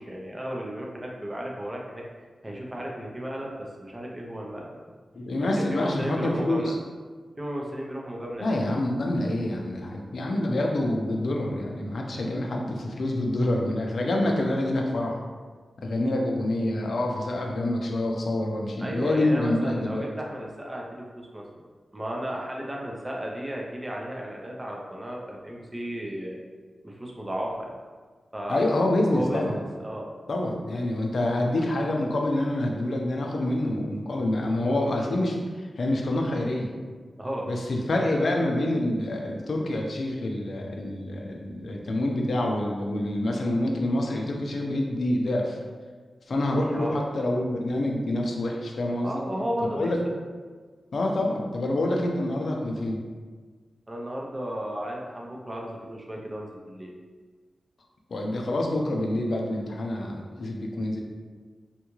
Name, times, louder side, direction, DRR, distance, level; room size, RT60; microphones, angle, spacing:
voice 1, 0.0-2.0 2.4-4.7 5.5-6.8 7.4-8.6 18.8-21.6 21.9-26.4 26.8-27.7 28.3-28.8 29.1-30.1 37.2-37.5 46.7-47.0 49.0-49.9 53.9-56.9, equal, 20° right, -2 dB, 0.5 m, -34 dB
voice 2, 5.1-6.7 8.4-15.2 15.8-20.1 28.5-29.6 30.3-36.7 37.5-45.6 46.3-49.2 49.7-50.0 50.9-53.0 58.1-61.0, left 1 dB, 65° left, 0 dB, 0.5 m, -27 dB
3.6 x 2.3 x 3.0 m, 1.5 s
wide cardioid pair, 105°, 0 cm